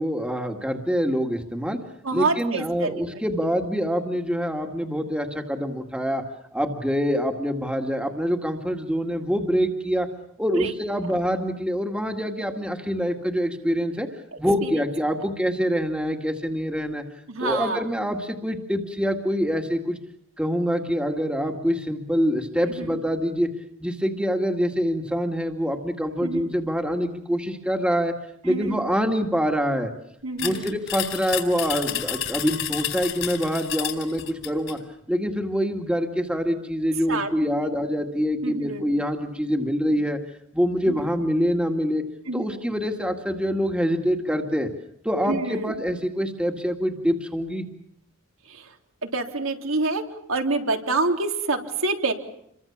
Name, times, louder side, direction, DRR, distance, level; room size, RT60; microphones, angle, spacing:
voice 1, 0.0-1.8 2.1-6.2 6.5-10.1 10.4-14.1 14.4-17.0 17.4-20.0 20.4-23.5 23.8-28.1 28.4-29.9 30.4-34.8 35.1-40.2 40.5-42.0 42.3-44.7 45.0-47.6, equal, 5° right, 4 dB, 2.1 m, -25 dB
voice 2, 2.0-3.2 10.5-10.7 14.3-14.8 17.3-17.8 22.8-23.0 26.2-26.5 28.5-28.8 30.2-30.8 37.1-37.3 38.4-38.8 40.8-41.1 42.3-42.4 45.3-45.7 48.5-48.7 49.0-50.0 50.3-52.1, right 3 dB, 75° right, 3 dB, 3.5 m, -27 dB
sound 1, 30.4-34.8, left 11 dB, 65° left, 4.3 m, -31 dB
29.0 x 23.5 x 7.3 m, 0.74 s
head